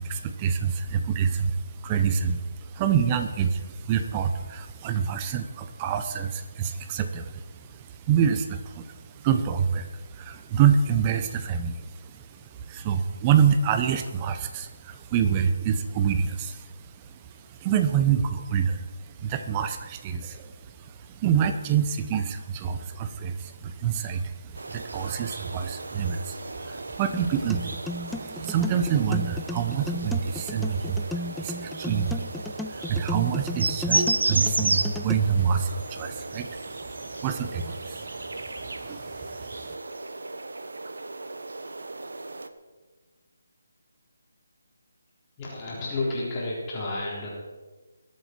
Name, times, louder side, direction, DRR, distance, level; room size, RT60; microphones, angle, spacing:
voice 1, 0.0-12.3 12.7-16.7 17.1-17.2 17.5-39.7, right 7 dB, 20° right, 9 dB, 1.0 m, -27 dB
sound 1, 24.5-42.5, right 2 dB, 70° right, 1.0 m, -33 dB
sound 2, 27.1-35.1, left 2 dB, ahead, 0.3 m, -35 dB
voice 2, 45.4-47.3, left 2 dB, 20° left, -6 dB, 3.9 m, -31 dB
21.5 x 8.1 x 4.6 m, 1.3 s
figure-of-eight pair, 155°, 0 cm